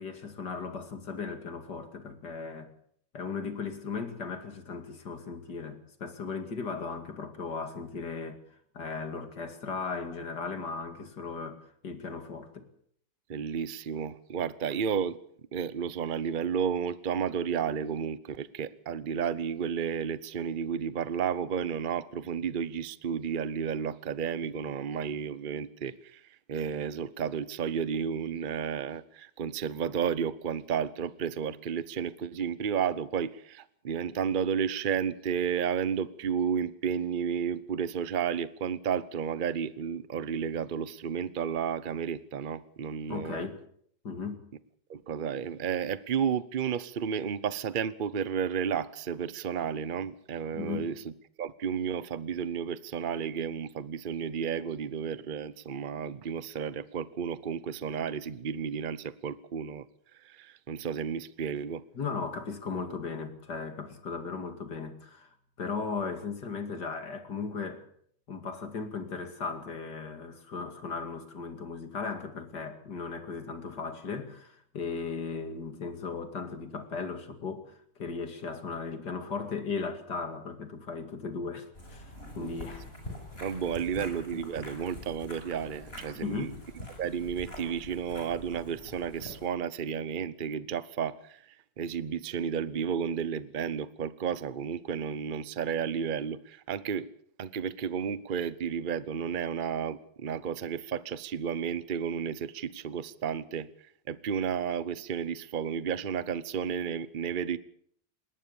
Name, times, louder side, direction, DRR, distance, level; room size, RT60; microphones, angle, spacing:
voice 1, 0.0-2.7 3.1-8.4 8.7-12.7 43.1-43.6 44.0-44.4 50.5-50.9 61.9-67.9 68.3-82.9 83.9-84.1 86.1-86.6, left 5 dB, 50° left, 2.9 m, -37 dB
voice 2, 13.3-15.2 15.5-26.2 26.5-43.5 44.9-51.0 51.4-59.8 60.2-61.8 82.4-82.5 83.4-86.5 87.0-91.4 91.8-97.1 97.4-103.7 104.1-107.6, right 7 dB, 75° right, 0.4 m, -32 dB
sound 1, 81.7-89.5, left 1 dB, 25° left, 6.9 m, -45 dB
20.5 x 19.0 x 7.0 m
omnidirectional pair, 2.3 m